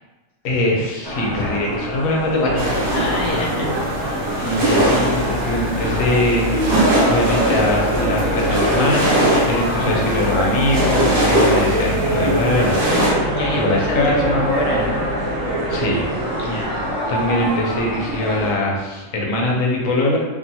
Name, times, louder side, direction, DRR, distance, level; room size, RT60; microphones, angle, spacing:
voice 1, 0.4-2.8 4.4-6.6 7.1-14.4 15.7-16.1 16.5-16.6 17.1-20.2, left 1 dB, 85° left, -2 dB, 1.0 m, -22 dB
sound 1, 1.0-18.5, equal, 25° right, 0.5 m, -27 dB
sound 2, 2.4-16.9, equal, 80° right, 1.0 m, -25 dB
sound 3, 2.6-13.1, right 1 dB, 55° right, 1.0 m, -22 dB
voice 2, 2.9-3.7 4.0-4.4 5.8-6.1 9.7-10.1 13.3-15.0 16.4-16.8, left 2 dB, 65° left, -2 dB, 0.7 m, -26 dB
2.7 x 2.2 x 2.7 m, 1.2 s
omnidirectional pair, 1.4 m